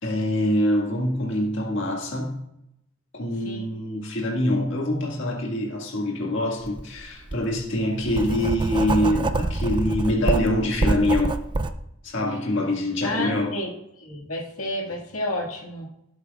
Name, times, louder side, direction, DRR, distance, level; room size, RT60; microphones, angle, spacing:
voice 1, 0.0-2.3 3.1-11.4 12.0-13.5, left 1 dB, 60° left, -2 dB, 1.9 m, -25 dB
Writing, 6.6-6.8 7.3-11.7, right 2 dB, 20° right, 0.4 m, -26 dB
voice 2, 13.0-13.7 14.0-15.9, left 1 dB, 85° left, -1 dB, 1.9 m, -30 dB
16.5 x 8.2 x 2.4 m, 0.84 s
head